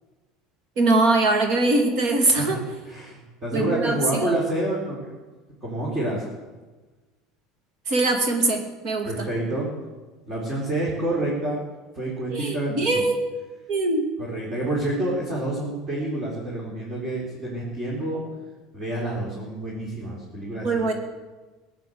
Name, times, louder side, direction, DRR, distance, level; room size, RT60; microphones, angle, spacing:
voice 1, 0.8-2.6 3.5-4.0 4.2-4.4 7.9-9.3 12.3-13.3 13.7-14.1 20.6-20.9, right 2 dB, 55° right, 4 dB, 2.4 m, -22 dB
voice 2, 2.4-5.2 5.6-6.2 9.0-9.7 10.3-11.6 11.9-13.0 14.2-18.2 18.7-20.9, right 1 dB, 30° right, -5 dB, 4.4 m, -28 dB
17.5 x 9.1 x 7.9 m, 1.3 s
supercardioid pair, 135°, 0 cm